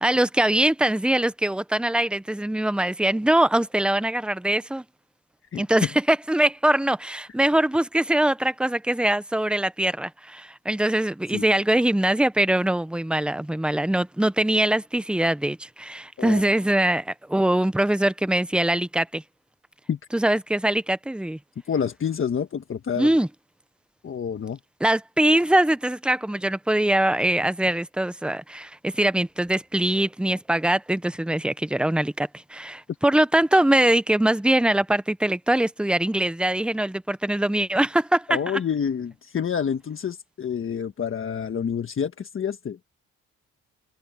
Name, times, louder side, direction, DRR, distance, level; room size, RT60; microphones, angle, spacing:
voice 1, 0.0-4.8 5.5-19.2 20.1-21.4 23.0-23.3 24.8-38.4, right 1 dB, 5° right, 0.8 m, -22 dB
voice 2, 21.7-23.1 24.0-24.6 38.3-42.8, left 7 dB, 45° left, 1.5 m, -28 dB
cardioid pair, 90°, 30 cm